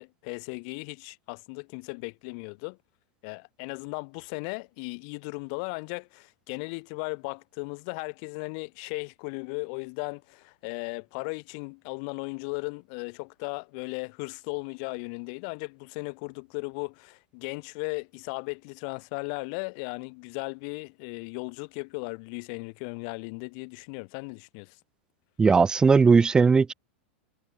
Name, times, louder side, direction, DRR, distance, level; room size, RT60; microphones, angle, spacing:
voice 1, 0.0-2.8 3.2-24.8, left 37 dB, 55° left, 3.0 m, -36 dB
voice 2, 25.4-26.7, right 5 dB, 15° right, 1.6 m, -18 dB
supercardioid pair, 135°, 6 cm